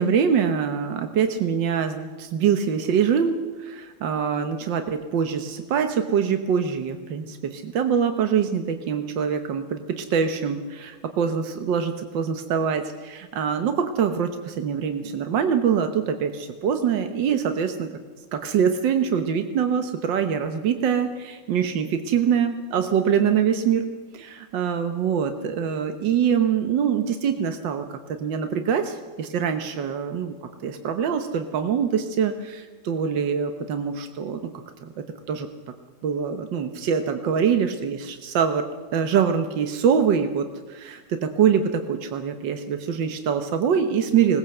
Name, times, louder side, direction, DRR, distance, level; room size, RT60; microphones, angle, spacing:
voice 1, 0.0-17.9 18.3-23.9 24.1-30.3 30.6-34.4 34.8-34.9 35.3-35.5 36.0-44.4, right 7 dB, 85° right, 7 dB, 1.8 m, -24 dB
20.5 x 18.0 x 7.8 m, 1.4 s
omnidirectional pair, 1.9 m